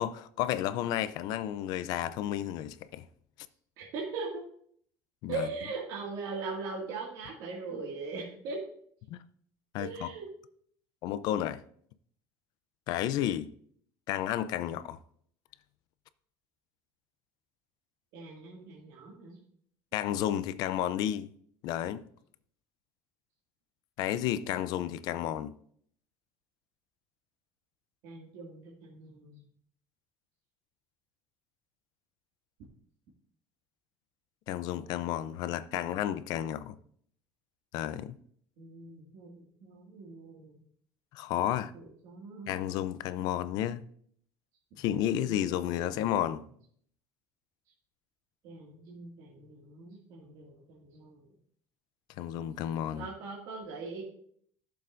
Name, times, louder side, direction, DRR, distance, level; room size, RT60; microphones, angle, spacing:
voice 1, 0.0-3.0 5.2-5.5 9.1-9.2 9.7-10.1 11.0-11.6 12.9-13.5 14.1-15.0 19.9-21.3 21.6-22.0 24.0-25.5 34.5-36.7 37.7-38.1 41.1-41.7 42.5-43.8 44.8-46.4 52.2-53.1, left 11 dB, 55° left, 0.5 m, -32 dB
voice 2, 3.8-4.3 5.3-8.6 9.8-10.3 18.1-19.4 28.0-29.4 36.4-36.7 38.6-40.6 41.7-42.6 45.2-46.2 48.4-51.2 53.0-54.0, right 3 dB, 60° right, 2.1 m, -41 dB
15.0 x 7.0 x 2.6 m
cardioid pair, 175°, 8 cm